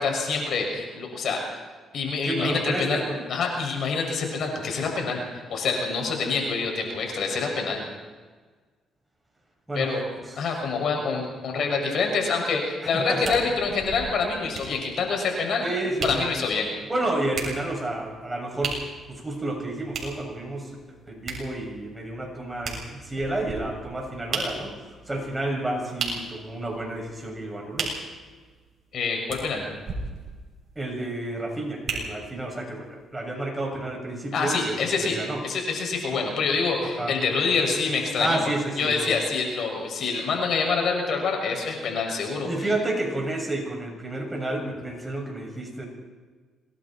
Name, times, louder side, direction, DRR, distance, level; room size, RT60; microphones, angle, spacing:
voice 1, 0.0-1.6 1.9-3.0 3.3-7.8 9.7-10.0 10.4-15.7 16.0-16.7 28.9-29.7 34.3-35.2 35.4-38.4 38.8-42.7, left 4 dB, 65° left, 2 dB, 6.6 m, -26 dB
voice 2, 2.3-3.2 9.7-9.9 10.3-10.5 12.8-13.4 15.6-16.3 16.9-18.8 19.1-20.7 21.1-24.7 25.1-27.9 30.8-35.4 36.1-36.3 36.8-37.1 38.2-39.1 42.4-45.9, right 2 dB, 15° right, 1 dB, 7.1 m, -30 dB
sound 1, 13.2-32.5 33.1-33.2, right 4 dB, 50° right, 7.4 m, -37 dB
27.0 x 21.5 x 4.5 m, 1.4 s
cardioid pair, 90°, 0 cm